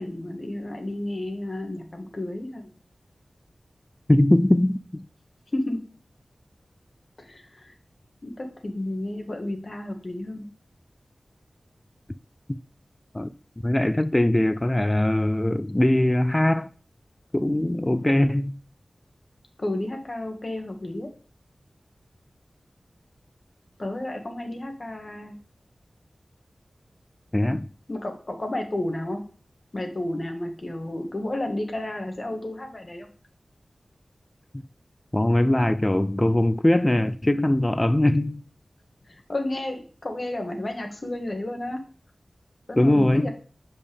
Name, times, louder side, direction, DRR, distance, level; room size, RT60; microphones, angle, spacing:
voice 1, 0.0-2.7 5.5-5.8 7.2-7.7 8.2-10.5 19.6-21.1 23.8-25.3 27.9-29.2 29.7-33.1 39.0-41.8 42.7-43.3, left 1 dB, 50° left, 1.4 m, -32 dB
voice 2, 4.1-5.0 12.5-12.6 13.1-13.3 13.6-16.7 17.3-18.6 27.3-27.7 35.1-38.4 42.8-43.3, left 1 dB, 20° left, 0.4 m, -21 dB
6.5 x 5.2 x 3.5 m
cardioid pair, 50°, 0 cm